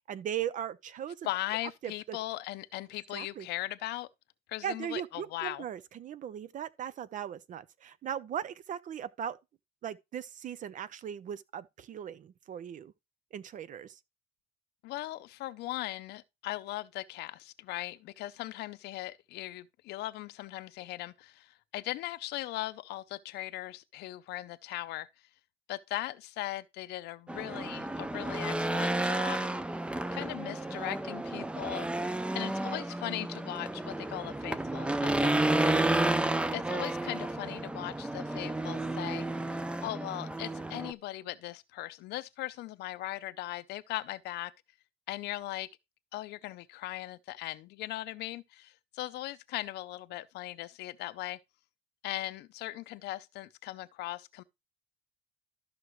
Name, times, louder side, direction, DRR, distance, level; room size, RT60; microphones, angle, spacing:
voice 1, 0.0-1.3 1.8-2.2 3.1-3.5 4.6-9.4 9.8-12.9 13.3-14.0, right 9 dB, 50° right, 0.6 m, -38 dB
voice 2, 1.2-4.1 4.5-5.6 14.8-25.3 25.7-29.5 30.1-32.0 32.3-35.8 36.1-44.5 45.1-45.7 46.1-51.4 52.0-54.4, left 16 dB, 80° left, 0.6 m, -39 dB
Race car auto racing / Engine, 27.3-40.9, right 2 dB, 5° right, 0.5 m, -31 dB
13.0 x 5.9 x 3.1 m
cardioid pair, 110°, 17 cm